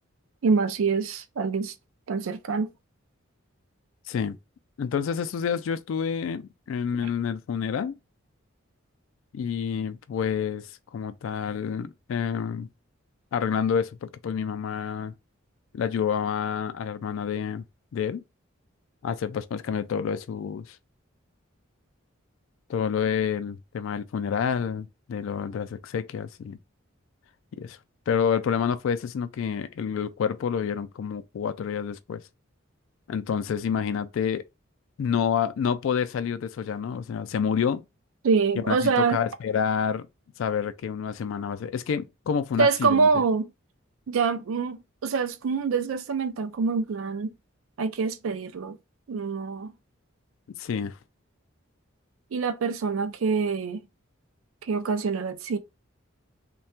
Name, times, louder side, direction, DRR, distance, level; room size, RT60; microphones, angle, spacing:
voice 1, 0.4-1.7 2.1-2.7 38.2-39.2 42.6-43.5 44.1-47.3 47.8-48.8 49.1-49.7 52.3-53.8 54.6-55.6, right 5 dB, 85° right, 0.4 m, -25 dB
voice 2, 4.8-8.0 9.3-12.7 13.3-15.1 15.7-17.6 17.9-18.2 19.0-20.8 22.7-26.6 27.6-27.8 28.1-32.2 33.1-34.4 35.0-37.8 38.6-40.1 40.4-43.1 50.6-51.0, left 7 dB, 75° left, 0.3 m, -28 dB
3.2 x 2.2 x 4.3 m
head